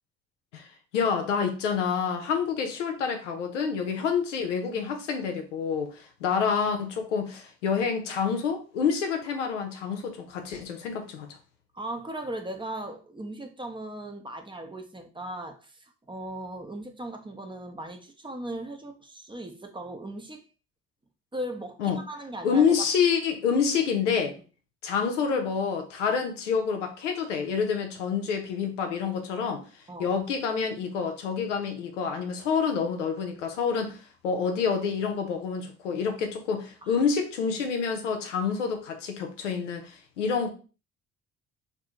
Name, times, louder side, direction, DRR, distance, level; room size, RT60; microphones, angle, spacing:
voice 1, 0.9-11.3 21.8-22.0 22.4-24.3 24.8-29.6 30.0-34.0 34.2-40.5, left 6 dB, 85° left, 5 dB, 0.6 m, -27 dB
voice 2, 11.7-20.4 21.3-22.9 29.9-30.1 36.8-37.0, right 1 dB, 15° right, 5 dB, 0.6 m, -38 dB
2.7 x 2.6 x 3.5 m, 0.36 s
figure-of-eight pair, 45°, 36 cm